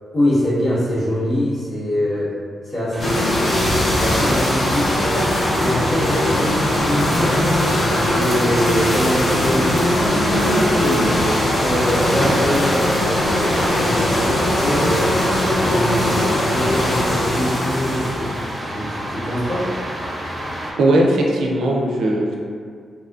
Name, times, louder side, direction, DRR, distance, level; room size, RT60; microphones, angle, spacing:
voice 1, 0.1-2.3 2.6-5.3 5.6-7.4 7.7-10.0 10.4-11.1 11.6-15.1 15.6-18.3 18.6-19.7, equal, 75° left, -14 dB, 1.4 m, -23 dB
sound 1, 2.9-20.7, equal, 35° right, 0.5 m, -31 dB
sound 2, 3.0-18.6, left 1 dB, 50° left, 0.7 m, -20 dB
voice 2, 20.8-22.4, right 1 dB, 90° right, -1 dB, 0.4 m, -18 dB
2.6 x 2.5 x 2.3 m, 2.2 s
cardioid pair, 70°, 0 cm